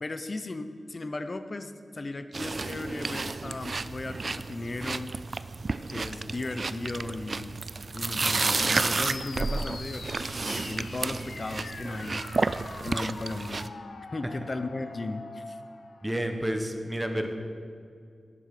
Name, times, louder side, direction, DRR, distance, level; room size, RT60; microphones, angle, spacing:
voice 1, 0.0-5.1 5.9-7.6 7.9-12.5 12.8-13.7 14.1-15.6, left 2 dB, 35° left, 10 dB, 0.6 m, -36 dB
sound 1, 2.3-13.7, right 3 dB, 45° right, 0.3 m, -31 dB
sound 2, 2.9-5.1 5.7-6.3 7.9-16.2, left 4 dB, 90° left, 0.9 m, -45 dB
voice 2, 16.0-17.3, right 1 dB, 10° right, 5 dB, 1.0 m, -30 dB
11.5 x 8.4 x 5.8 m, 2.3 s
wide cardioid pair, 125°, 0 cm